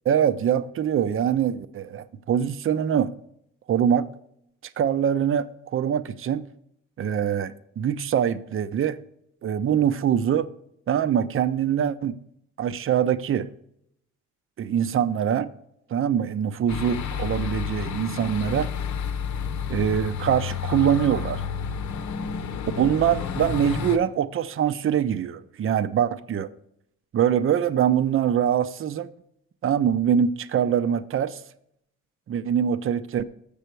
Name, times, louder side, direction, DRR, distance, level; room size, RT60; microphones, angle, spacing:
voice 1, 0.1-3.1 3.7-4.1 4.8-6.5 7.0-9.0 9.4-10.5 10.9-12.2 12.6-13.5 14.6-15.5 15.9-18.7 19.7-21.4 22.8-26.5 27.1-29.1 29.6-31.4 32.3-33.2, right 9 dB, 45° right, 0.6 m, -23 dB
sound 1, 16.7-24.0, left 7 dB, 65° left, 0.8 m, -30 dB
7.3 x 6.9 x 4.5 m
cardioid pair, 90°, 30 cm